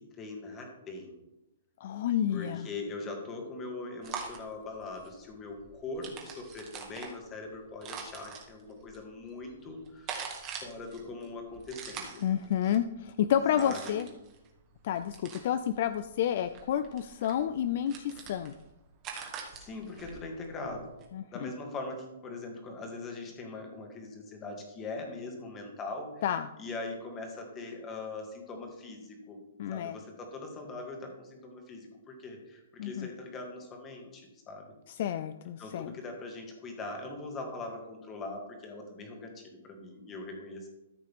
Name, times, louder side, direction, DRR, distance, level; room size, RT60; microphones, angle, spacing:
voice 1, 0.1-1.1 2.3-12.2 13.5-14.0 19.5-20.9 21.3-26.2 26.6-29.4 29.7-34.7 35.6-40.7, left 3 dB, 15° left, 2 dB, 1.8 m, -41 dB
voice 2, 1.8-2.7 12.2-14.1 14.8-18.5 21.1-21.5 26.2-26.5 29.6-30.0 32.8-33.1 35.0-35.9, left 10 dB, 50° left, 12 dB, 0.4 m, -30 dB
sound 1, 4.0-21.1, right 6 dB, 25° right, 1.7 m, -45 dB
13.5 x 6.5 x 3.6 m, 0.94 s
hypercardioid pair, 160°, 0 cm